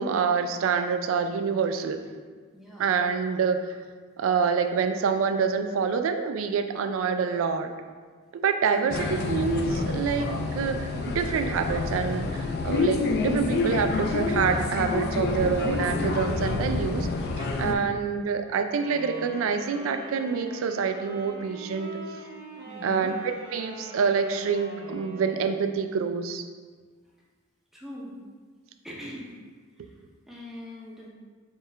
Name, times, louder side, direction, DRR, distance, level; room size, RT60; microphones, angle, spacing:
voice 1, 0.0-2.0 2.8-3.8 4.2-7.7 8.3-17.1 17.4-21.9 22.8-23.2 23.5-26.4, right 6 dB, 70° right, 8 dB, 0.3 m, -27 dB
voice 2, 2.5-2.9 8.6-9.1 17.7-18.0 22.6-23.2 27.0-27.1 27.7-28.2 28.8-29.3 29.8-31.1, equal, ahead, -5 dB, 0.6 m, -42 dB
sound 1, 8.9-17.7, left 3 dB, 50° left, 0.3 m, -28 dB
Wind instrument woodwind instrument, 18.8-25.7, right 1 dB, 85° right, 1.3 m, -43 dB
4.6 x 2.4 x 3.2 m, 1.5 s
head